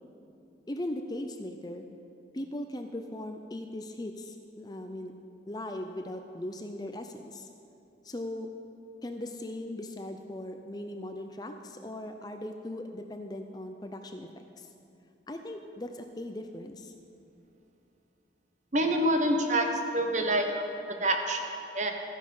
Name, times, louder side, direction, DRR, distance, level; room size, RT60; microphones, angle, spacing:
voice 1, 0.7-1.9 2.3-5.2 5.5-7.5 8.0-8.5 9.0-14.3 14.6-14.7 15.3-16.9, left 1 dB, 20° left, 6 dB, 0.5 m, -39 dB
voice 2, 18.7-20.7 21.0-21.9, right 1 dB, 40° right, 4 dB, 1.1 m, -27 dB
14.0 x 10.0 x 5.5 m, 2.7 s
head